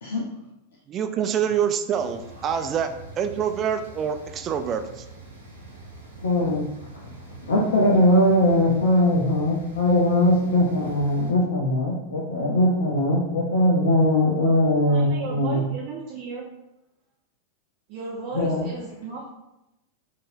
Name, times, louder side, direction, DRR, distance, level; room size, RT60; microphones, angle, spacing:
voice 1, 0.9-5.0, right 8 dB, 30° right, 8 dB, 0.3 m, -26 dB
sound 1, 1.9-11.3, right 2 dB, 75° right, 0.9 m, -44 dB
voice 2, 6.2-15.7 18.3-18.7, left 1 dB, 65° left, -3 dB, 0.6 m, -21 dB
voice 3, 14.9-16.4 17.9-19.3, right 4 dB, 45° right, -5 dB, 0.9 m, -35 dB
5.3 x 2.6 x 2.6 m, 0.90 s
figure-of-eight pair, 90°, 0 cm